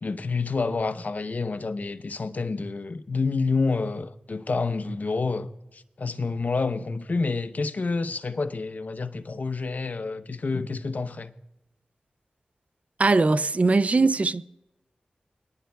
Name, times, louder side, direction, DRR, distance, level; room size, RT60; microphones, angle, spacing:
voice 1, 0.0-11.3, left 4 dB, 60° left, 0.7 m, -28 dB
voice 2, 13.0-14.4, right 3 dB, 45° right, 0.4 m, -20 dB
22.0 x 10.5 x 2.3 m
cardioid pair, 45°, 3 cm